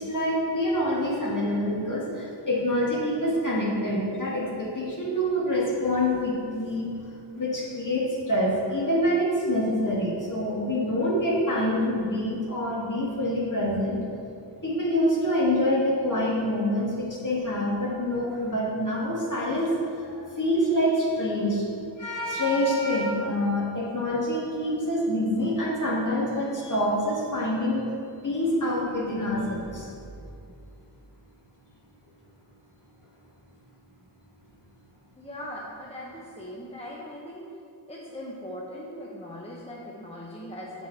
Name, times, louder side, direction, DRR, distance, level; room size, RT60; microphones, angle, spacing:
voice 1, 0.0-6.9 7.3-14.0 14.6-21.7 22.0-27.8 28.2-29.9, left 1 dB, 40° left, -5 dB, 1.9 m, -26 dB
voice 2, 35.2-37.4 37.9-40.9, left 1 dB, 15° left, -4 dB, 0.8 m, -40 dB
8.1 x 5.4 x 4.5 m, 2.6 s
wide cardioid pair, 105°, 46 cm